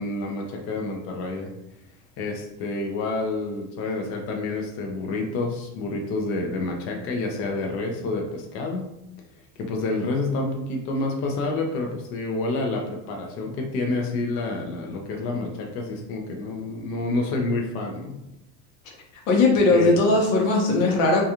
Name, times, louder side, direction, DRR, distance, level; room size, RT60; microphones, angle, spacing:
voice 1, 0.0-1.5 2.2-8.9 9.6-18.2 19.7-19.9, left 2 dB, 35° left, 1 dB, 0.4 m, -28 dB
voice 2, 19.1-21.3, left 2 dB, 80° left, 0 dB, 0.9 m, -19 dB
2.4 x 2.3 x 2.8 m, 0.87 s
supercardioid pair, 140°, 40 cm